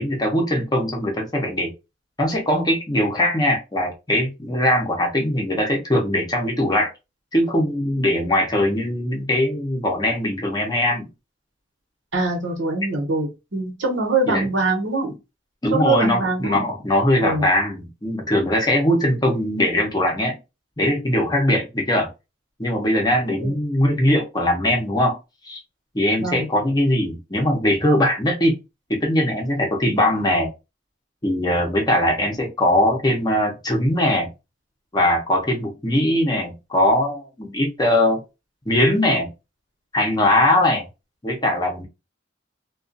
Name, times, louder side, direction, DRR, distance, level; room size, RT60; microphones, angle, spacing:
voice 1, 0.0-1.7 2.2-6.9 7.3-11.1 14.3-14.5 15.6-20.4 20.8-22.1 22.6-25.2 25.4-25.6 25.9-28.6 28.9-30.5 31.2-34.3 34.9-38.2 38.7-39.3 39.9-40.9 41.2-41.8, left 1 dB, 20° left, 1 dB, 0.7 m, -21 dB
voice 2, 12.1-15.1 15.7-16.6 17.2-17.5 23.4-23.5 26.2-26.5, right 3 dB, 80° right, 1 dB, 1.0 m, -23 dB
2.4 x 2.3 x 2.6 m, 0.25 s
head